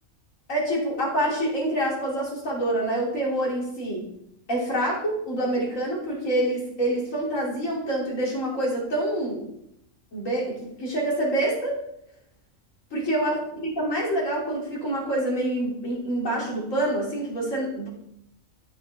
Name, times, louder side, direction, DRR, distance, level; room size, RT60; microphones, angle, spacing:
voice 1, 0.5-4.1 4.5-9.4 10.1-11.8 12.9-17.9, right 1 dB, 75° left, -3 dB, 3.2 m, -26 dB
13.0 x 6.0 x 3.5 m, 0.77 s
omnidirectional pair, 1.4 m